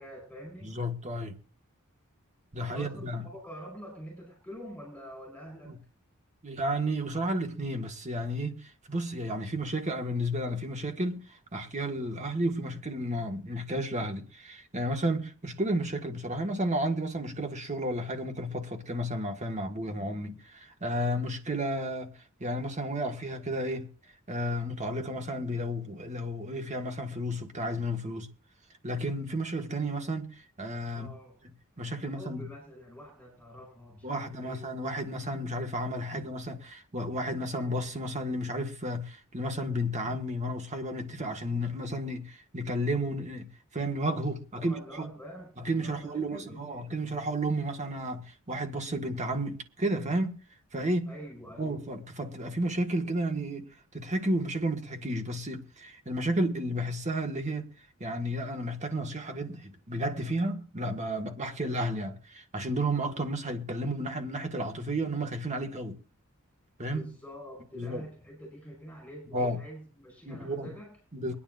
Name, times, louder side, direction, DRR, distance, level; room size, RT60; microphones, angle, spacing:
voice 1, 0.0-0.8 2.6-5.8 30.9-31.3 32.0-34.6 36.1-36.3 44.5-45.5 45.8-46.9 51.1-51.8 66.9-71.0, equal, 5° left, 5.3 m, -46 dB
voice 2, 0.6-1.4 2.5-3.2 6.4-11.2 11.5-22.1 22.4-23.9 24.3-28.3 28.8-30.3 30.6-31.1 31.8-32.5 34.0-45.1 45.6-50.4 50.7-51.1 51.6-53.7 53.9-57.7 58.0-66.0 66.8-67.1 67.7-68.0 69.3-69.6 70.2-70.7 71.1-71.3, right 1 dB, 35° right, 1.8 m, -32 dB
23.5 x 10.0 x 2.6 m
head